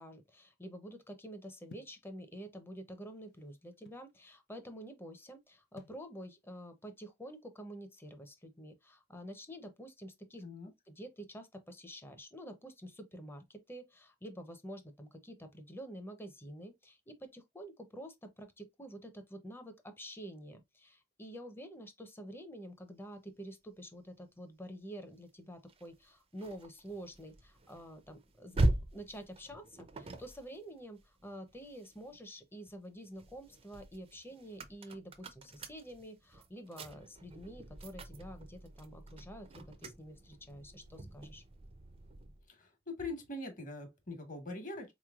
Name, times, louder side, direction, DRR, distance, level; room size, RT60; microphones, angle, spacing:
voice 1, 0.0-10.4 10.9-41.4, equal, 10° left, 0.6 m, -48 dB
sound 1, 1.7-2.0 2.9-4.1 5.8-6.1, left 2 dB, 65° left, 0.6 m, -56 dB
voice 2, 10.4-10.7 42.5-44.9, left 2 dB, 45° left, 1.3 m, -43 dB
sound 2, 25.7-32.2 32.7-42.5, right 1 dB, 30° right, 0.5 m, -41 dB
4.2 x 3.1 x 2.3 m
head